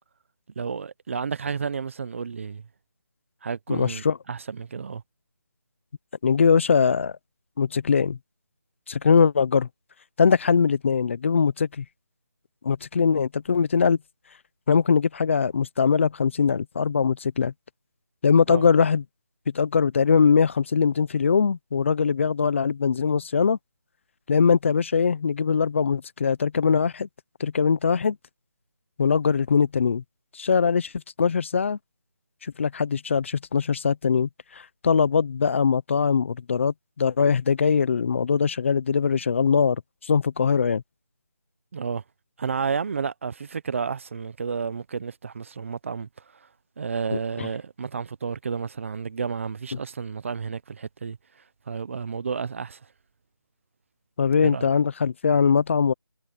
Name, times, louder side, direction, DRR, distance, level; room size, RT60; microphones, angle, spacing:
voice 1, 0.6-2.7 3.4-5.0 18.5-18.7 41.7-42.0 42.4-46.5 46.8-51.2 51.7-52.8 54.4-54.6, right 5 dB, 35° right, 0.9 m, -31 dB
voice 2, 3.7-4.2 6.2-7.1 7.6-8.2 8.9-9.7 10.2-11.8 12.6-14.0 14.7-17.5 18.2-19.0 19.5-23.6 24.3-27.1 27.4-28.2 29.0-30.0 30.3-30.9 31.2-31.8 32.4-39.8 40.0-40.8 47.1-47.5 54.2-55.9, left 6 dB, 35° left, 1.0 m, -21 dB
figure-of-eight pair, 165°, 12 cm